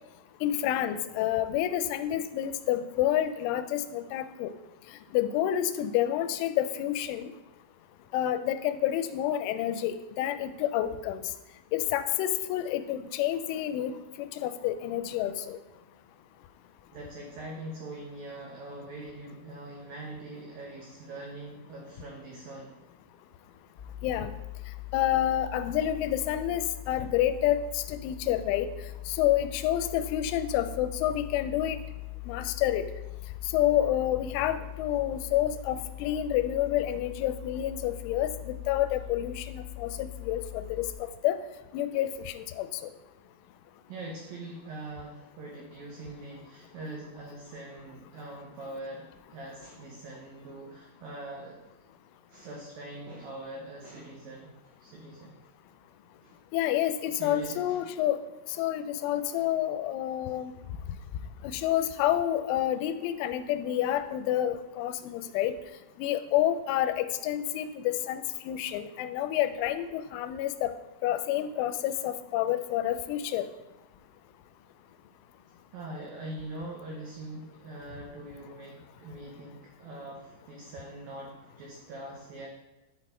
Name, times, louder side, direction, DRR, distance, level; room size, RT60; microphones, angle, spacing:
voice 1, 0.4-4.5 5.1-7.3 8.1-11.2 11.7-13.9 14.2-15.6 24.0-24.3 24.9-28.7 29.1-31.8 32.3-32.8 33.5-41.4 41.7-42.9 56.5-58.2 58.6-60.5 61.4-65.5 66.0-70.7 71.0-73.5, left 12 dB, 85° left, 10 dB, 3.0 m, -29 dB
voice 2, 16.9-22.8 43.9-51.6 52.3-55.5 56.2-56.4 57.1-57.9 63.8-63.9 75.7-82.5, right 2 dB, 85° right, -1 dB, 2.0 m, -43 dB
sound 1, 23.8-40.9, left 16 dB, 35° left, 1.5 m, -41 dB
11.0 x 4.2 x 4.3 m, 1.0 s
omnidirectional pair, 5.4 m